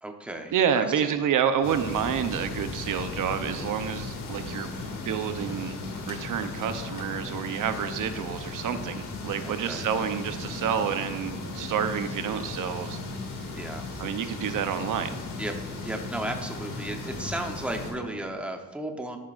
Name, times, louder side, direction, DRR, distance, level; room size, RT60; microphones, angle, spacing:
voice 1, 0.0-1.2 9.4-9.8 13.5-13.8 15.4-19.2, right 1 dB, 5° right, 3 dB, 0.9 m, -35 dB
voice 2, 0.5-4.7 5.1-5.8 6.1-13.0 14.0-15.2, right 8 dB, 70° right, 9 dB, 0.8 m, -28 dB
sound 1, 1.6-17.9, left 3 dB, 80° left, 2.6 m, -36 dB
12.5 x 11.0 x 2.5 m, 1.2 s
cardioid pair, 150°, 33 cm